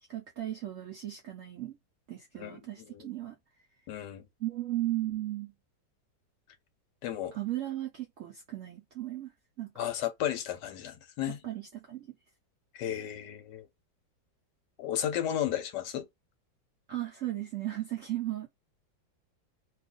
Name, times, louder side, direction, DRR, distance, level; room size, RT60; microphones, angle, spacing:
voice 1, 0.1-1.8 2.1-3.4 4.4-5.5 7.3-9.3 9.6-9.7 11.3-12.2 16.9-18.5, right 14 dB, 70° right, 0.7 m, -36 dB
voice 2, 2.4-3.1 3.9-4.3 7.0-7.4 9.8-11.4 12.7-13.7 14.8-16.1, left 10 dB, 75° left, 1.1 m, -34 dB
2.8 x 2.4 x 3.7 m
omnidirectional pair, 2.0 m